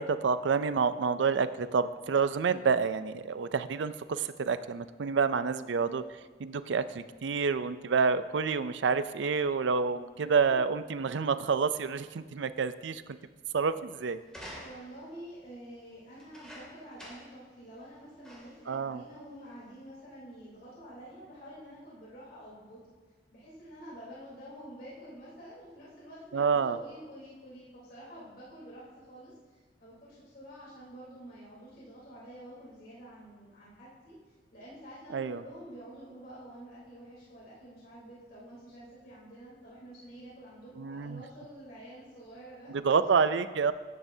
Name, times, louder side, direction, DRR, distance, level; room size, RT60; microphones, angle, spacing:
voice 1, 0.0-6.0 6.4-13.0 13.5-14.2 18.7-19.0 26.3-26.8 35.1-35.4 40.8-41.2 42.7-43.7, right 5 dB, 80° right, 13 dB, 0.5 m, -28 dB
voice 2, 9.8-10.3 14.6-22.8 23.3-34.2 34.5-42.7 43.1-43.2, right 1 dB, 55° left, -8 dB, 3.6 m, -48 dB
sound 1, 14.3-15.1 16.1-17.4 17.8-17.9 18.2-18.7 19.4-19.5, equal, 5° left, 2.5 m, -48 dB
13.0 x 10.0 x 2.8 m, 1.3 s
head